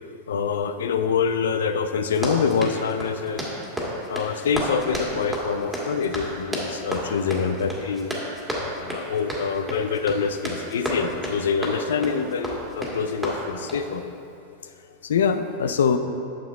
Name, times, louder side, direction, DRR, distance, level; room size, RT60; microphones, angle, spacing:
voice 1, 0.3-3.5 4.1-8.1 8.6-14.1 14.6-14.7 15.0-16.0, left 6 dB, 85° left, 9 dB, 0.5 m, -25 dB
Run, 2.1-13.9, equal, 10° right, 1.8 m, -31 dB
9.2 x 6.6 x 3.5 m, 2.7 s
hypercardioid pair, 120°, 0 cm